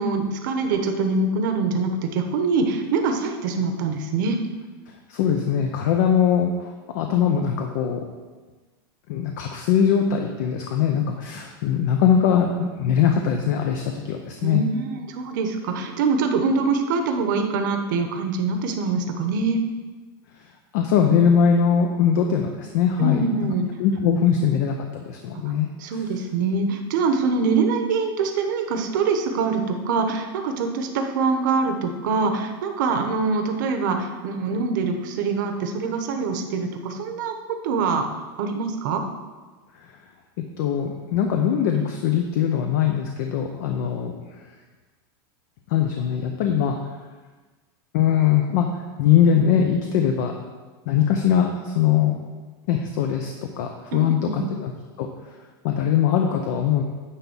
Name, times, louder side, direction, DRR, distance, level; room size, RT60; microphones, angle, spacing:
voice 1, 0.0-4.4 14.4-19.6 23.0-23.7 25.3-25.5 25.8-37.4 37.6-38.1 38.4-39.0 53.9-54.5, right 4 dB, 55° right, 5 dB, 1.1 m, -24 dB
voice 2, 5.1-8.0 9.1-14.6 20.7-23.4 23.8-25.7 39.7-40.0 40.4-44.5 45.7-46.8 47.9-50.3 50.9-52.1 52.7-54.7 55.0-55.1 55.6-56.8, left 8 dB, 50° left, 4 dB, 0.7 m, -21 dB
9.9 x 3.5 x 7.1 m, 1.3 s
supercardioid pair, 175°, 12 cm